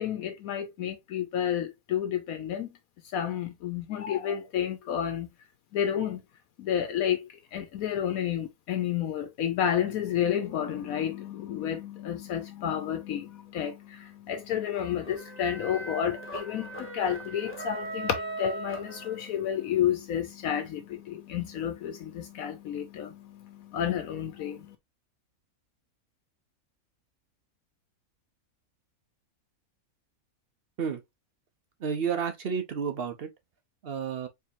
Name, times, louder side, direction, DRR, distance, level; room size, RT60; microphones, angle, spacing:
voice 1, 0.0-2.7 3.1-5.3 5.7-6.2 6.6-24.7, left 9 dB, 80° left, 1.1 m, -31 dB
sound 1, 14.7-19.5, right 2 dB, 10° left, 0.9 m, -39 dB
voice 2, 31.8-33.3 33.8-34.3, right 6 dB, 55° right, 0.8 m, -31 dB
4.5 x 2.8 x 2.6 m
omnidirectional pair, 1.5 m